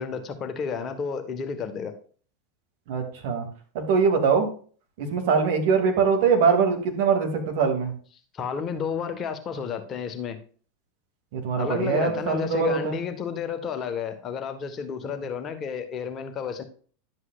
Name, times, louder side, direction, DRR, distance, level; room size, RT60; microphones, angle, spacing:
voice 1, 0.0-1.9 8.3-10.4 11.5-16.6, left 6 dB, 30° left, 7 dB, 1.3 m, -31 dB
voice 2, 2.9-3.5 3.7-4.5 5.0-7.9 11.3-13.0 15.0-15.1, right 5 dB, 55° right, 2 dB, 2.5 m, -22 dB
11.5 x 8.1 x 2.4 m, 0.41 s
figure-of-eight pair, 85°, 0 cm